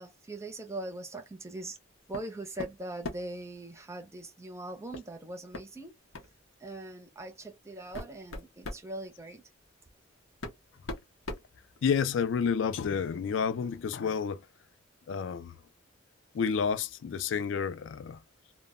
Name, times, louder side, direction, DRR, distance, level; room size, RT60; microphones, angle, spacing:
voice 1, 0.0-1.8 2.1-5.9 6.6-9.4, right 2 dB, 15° right, 0.5 m, -41 dB
sound 1, 2.1-2.3 2.6-3.4 4.9-5.1 5.5-5.7 6.1-6.3 7.2-7.3 7.7-8.9 9.9-10.0 10.4-12.2, left 2 dB, 90° left, 0.7 m, -40 dB
voice 2, 11.8-14.4 15.1-15.5 16.3-18.2, left 6 dB, 65° left, 0.3 m, -30 dB
2.1 x 2.1 x 3.5 m
head